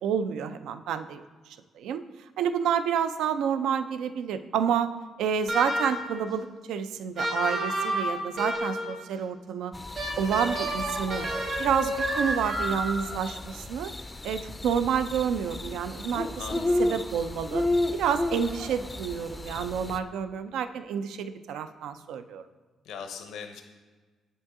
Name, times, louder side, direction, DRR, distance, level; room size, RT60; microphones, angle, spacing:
voice 1, 0.0-2.0 2.4-4.9 5.2-9.7 10.2-11.3 11.6-13.9 14.2-17.6 17.9-22.4, right 7 dB, 85° right, 11 dB, 0.3 m, -29 dB
sound 1, 5.5-6.2 7.2-9.0 10.0-13.2, right 1 dB, 65° right, 1.9 m, -30 dB
sound 2, 9.7-20.0, left 2 dB, 15° left, 0.4 m, -33 dB
voice 2, 16.4-16.8 22.8-23.6, left 6 dB, 80° left, 6 dB, 0.6 m, -39 dB
7.7 x 5.3 x 3.6 m, 1.4 s
cardioid pair, 90°, 0 cm